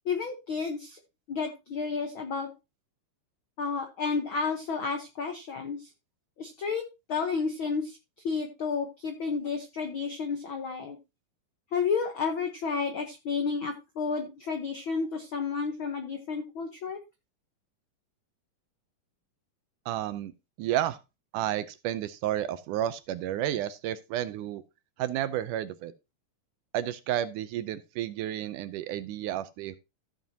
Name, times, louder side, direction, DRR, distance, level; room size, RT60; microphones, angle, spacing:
voice 1, 0.0-1.0 1.3-2.5 3.6-5.9 6.4-6.8 7.1-8.0 8.2-11.0 11.7-17.0, left 5 dB, 80° left, 1.1 m, -31 dB
voice 2, 19.9-20.3 20.6-21.0 21.3-24.6 25.0-25.9 26.7-29.8, right 12 dB, 75° right, 2.0 m, -31 dB
14.5 x 7.3 x 2.8 m
omnidirectional pair, 4.0 m